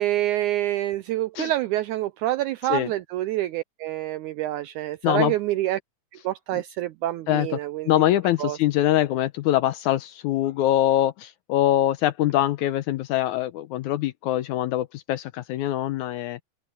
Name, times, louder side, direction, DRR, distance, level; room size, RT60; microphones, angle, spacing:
voice 1, 0.0-5.8 6.2-7.9 8.4-8.6, right 14 dB, 85° right, 1.7 m, -27 dB
voice 2, 5.0-5.3 6.5-6.6 7.3-7.6 7.9-16.4, left 13 dB, 80° left, 1.8 m, -23 dB
omnidirectional pair, 4.1 m